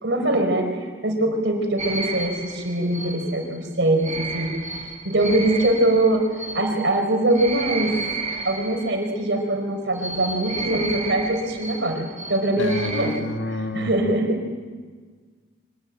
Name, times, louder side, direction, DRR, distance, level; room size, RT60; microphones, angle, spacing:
voice 1, 0.0-4.5 5.0-6.2 6.5-7.9 8.4-13.1 13.7-14.4, right 1 dB, 70° right, 4 dB, 4.4 m, -22 dB
sound 1, 1.8-9.3 9.9-13.2, right 3 dB, 35° right, 1.9 m, -33 dB
voice 2, 12.6-13.9, left 1 dB, 90° left, 6 dB, 1.7 m, -28 dB
24.0 x 19.0 x 9.1 m, 1.5 s
head